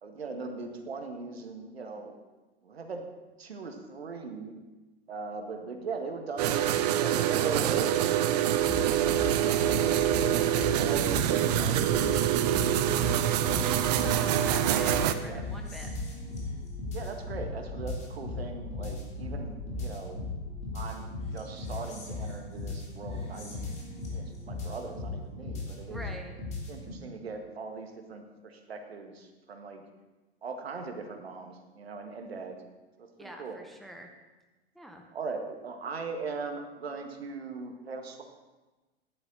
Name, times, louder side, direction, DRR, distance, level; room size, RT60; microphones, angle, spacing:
voice 1, 0.0-2.1 2.6-3.0 3.4-4.5 5.1-12.7 15.2-15.4 16.9-20.2 20.7-23.8 24.1-26.0 26.7-29.8 30.4-32.6 33.0-33.6 35.1-38.2, right 4 dB, 70° right, 5 dB, 1.8 m, -40 dB
sound 1, 6.4-15.1, right 11 dB, 40° right, 0.7 m, -25 dB
sound 2, 8.6-26.9, left 2 dB, 20° left, 3.3 m, -37 dB
voice 2, 12.8-15.9 25.9-26.4 33.2-34.1 34.7-35.0, right 1 dB, ahead, 3 dB, 0.8 m, -45 dB
14.5 x 11.0 x 4.0 m, 1.2 s
figure-of-eight pair, 100°, 32 cm